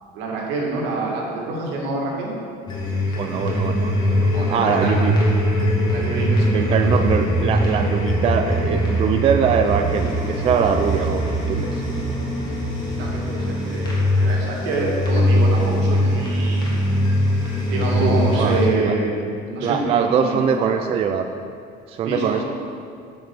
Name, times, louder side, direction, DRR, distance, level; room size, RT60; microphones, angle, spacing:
voice 1, 0.1-2.3 4.3-5.2 5.9-7.1 13.0-16.7 17.7-19.1 19.4-20.7 22.0-22.4, right 2 dB, 80° right, -2 dB, 2.2 m, -27 dB
sound 1, 2.7-18.7, equal, 25° left, 1.7 m, -21 dB
voice 2, 3.1-5.2 6.5-11.8 18.0-19.0 19.6-21.2 21.9-22.4, right 7 dB, 30° right, 6 dB, 0.3 m, -22 dB
9.2 x 5.3 x 6.0 m, 2.3 s
cardioid pair, 165°, 18 cm